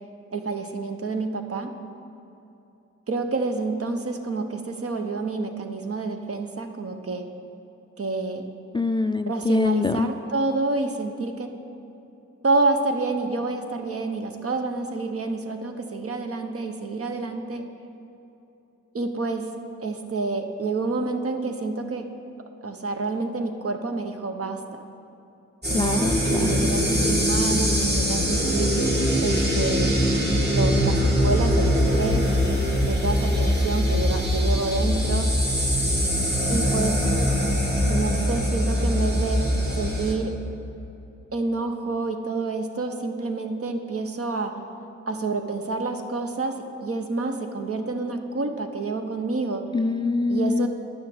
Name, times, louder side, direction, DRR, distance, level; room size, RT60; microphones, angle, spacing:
voice 1, 0.3-1.7 3.1-7.2 8.0-8.4 9.3-11.5 12.4-17.6 18.9-19.5 19.8-22.1 22.6-24.8 25.7-28.7 29.2-32.3 32.8-35.3 36.5-37.0 37.9-39.4 39.7-40.3 41.3-44.5 45.1-46.5 46.8-49.6 50.3-50.7, right 3 dB, 50° right, 5 dB, 1.0 m, -28 dB
voice 2, 8.7-10.1 25.7-26.8 49.7-50.7, left 3 dB, 15° left, 8 dB, 0.3 m, -24 dB
sound 1, 25.6-40.2, equal, 35° right, 2.5 m, -22 dB
9.8 x 6.3 x 7.2 m, 2.9 s
cardioid pair, 50°, 30 cm